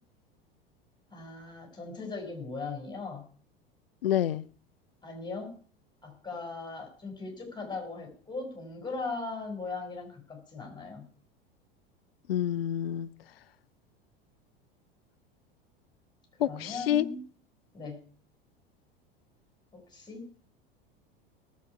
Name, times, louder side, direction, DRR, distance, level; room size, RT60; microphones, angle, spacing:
voice 1, 1.1-3.3 5.0-5.5 6.0-11.1 16.4-17.2 17.7-18.0 19.7-20.3, left 3 dB, 15° left, 6.2 m, -39 dB
voice 2, 4.0-4.4 12.3-13.1 16.4-17.1, left 11 dB, 80° left, 0.7 m, -27 dB
19.0 x 8.5 x 4.8 m
hypercardioid pair, 85°, 29 cm